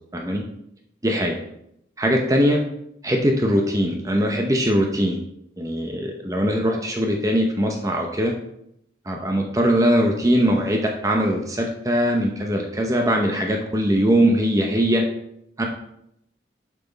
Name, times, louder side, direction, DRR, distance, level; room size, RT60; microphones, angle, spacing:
voice 1, 1.0-1.4 2.0-2.6 3.0-5.2 5.6-8.3 9.1-15.0 15.6-15.7, equal, 20° right, 1 dB, 0.7 m, -21 dB
7.1 x 5.9 x 4.1 m, 0.77 s
head